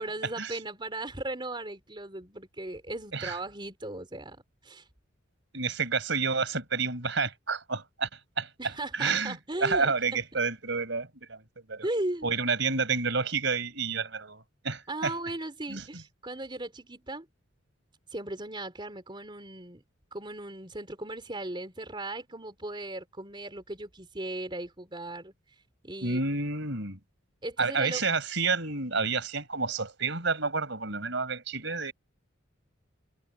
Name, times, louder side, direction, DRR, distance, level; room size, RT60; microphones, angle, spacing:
voice 1, 0.0-4.4 4.6-4.8 8.6-9.9 11.8-12.3 14.9-17.3 18.1-19.8 20.1-25.3 25.8-26.2 27.4-28.1, right 2 dB, 25° right, 4.0 m, -37 dB
voice 2, 5.5-8.1 8.4-11.4 11.7-11.8 12.2-15.1 15.7-15.8 26.0-27.0 27.6-31.9, right 4 dB, 65° right, 5.5 m, -29 dB
head